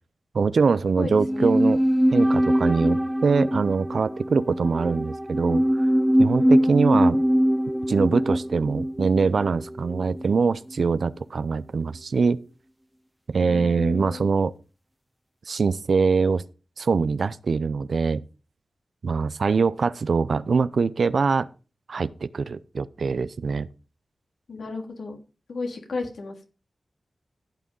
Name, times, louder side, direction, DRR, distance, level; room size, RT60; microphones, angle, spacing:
voice 1, 0.3-1.8 2.1-5.9 6.2-7.2 7.9-12.4 13.3-14.5 15.5-16.4 16.8-18.2 19.0-21.5 21.9-23.7, right 5 dB, 70° right, 0.6 m, -23 dB
voice 2, 1.0-1.5 6.2-6.9 13.4-14.3 24.5-25.2 25.5-26.5, left 3 dB, 80° left, 3.3 m, -34 dB
sound 1, 1.1-10.4 10.7-10.8, equal, 5° right, 0.5 m, -22 dB
15.0 x 6.3 x 5.4 m
wide cardioid pair, 75°, 0 cm